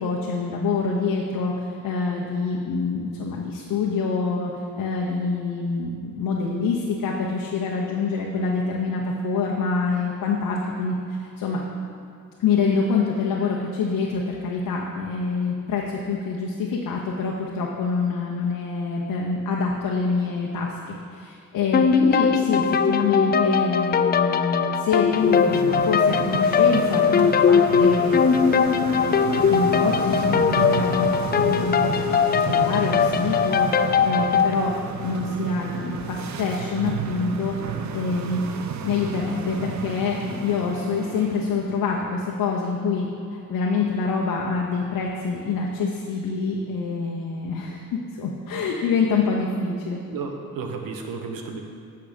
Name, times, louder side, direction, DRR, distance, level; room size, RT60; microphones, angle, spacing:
voice 1, 0.0-11.6 12.4-28.2 28.6-31.7 32.1-34.7 35.0-37.5 37.9-38.4 38.8-50.0, left 4 dB, 65° left, -2 dB, 1.0 m, -26 dB
sound 1, 21.7-34.5, left 6 dB, 30° left, 0.4 m, -20 dB
sound 2, 25.0-41.6, right 6 dB, 55° right, 0.7 m, -32 dB
voice 2, 50.1-51.6, right 4 dB, 75° right, 3 dB, 1.2 m, -32 dB
8.5 x 5.7 x 5.2 m, 2.5 s
supercardioid pair, 70°, 35 cm